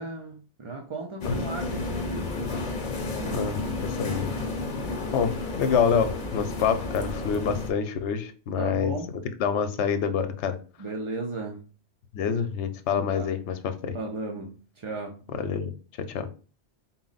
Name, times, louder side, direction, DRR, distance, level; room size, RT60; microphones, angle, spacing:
voice 1, 0.0-2.3 3.2-3.4 4.6-4.8 8.6-9.1 10.8-11.6 12.9-13.3 13.9-15.2, right 3 dB, 50° right, 0.3 m, -35 dB
sound 1, 1.2-7.7, left 3 dB, 50° left, 0.8 m, -32 dB
voice 2, 3.3-4.3 5.1-9.0 9.4-10.6 12.1-13.9 15.3-15.7 16.0-16.3, left 7 dB, 80° left, 0.9 m, -27 dB
4.2 x 2.0 x 3.9 m
omnidirectional pair, 1.2 m